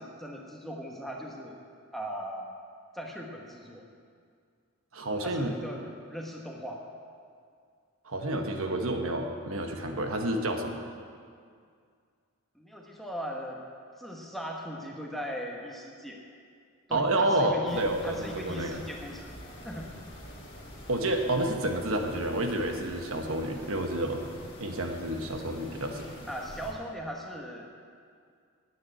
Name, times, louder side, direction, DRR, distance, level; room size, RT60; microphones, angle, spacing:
voice 1, 0.0-1.6 1.9-2.5 2.9-3.9 5.2-6.8 12.5-13.6 14.0-16.2 16.9-19.3 19.6-19.9 26.3-27.6, equal, ahead, -1 dB, 1.2 m, -39 dB
voice 2, 4.9-5.6 8.0-10.8 16.9-18.8 20.9-24.2 24.6-26.1, right 1 dB, 65° right, 4 dB, 1.2 m, -29 dB
sound 1, 17.7-26.7, equal, 25° left, 2.3 m, -46 dB
9.5 x 9.2 x 8.8 m, 2.2 s
head